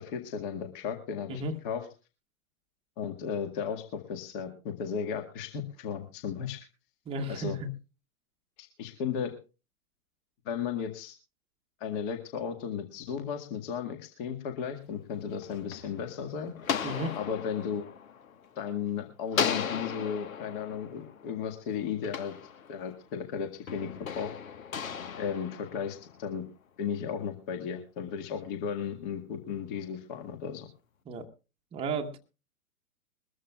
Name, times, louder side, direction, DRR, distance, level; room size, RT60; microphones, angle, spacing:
voice 1, 0.0-1.9 3.0-6.6 7.3-7.6 8.6-9.3 10.5-11.1 11.8-16.5 17.1-17.9 18.6-22.3 22.7-23.9 24.2-24.3 25.2-26.4 26.8-30.7, left 7 dB, 35° left, 6 dB, 1.9 m, -35 dB
voice 2, 7.0-7.7 16.8-17.2 31.1-31.3 31.7-32.2, right 2 dB, 15° right, 3 dB, 1.1 m, -33 dB
sound 1, 15.1-18.8 19.3-23.1 23.7-26.3, left 7 dB, 65° left, 1.5 m, -36 dB
22.0 x 14.0 x 2.3 m, 0.31 s
figure-of-eight pair, 120°, 44 cm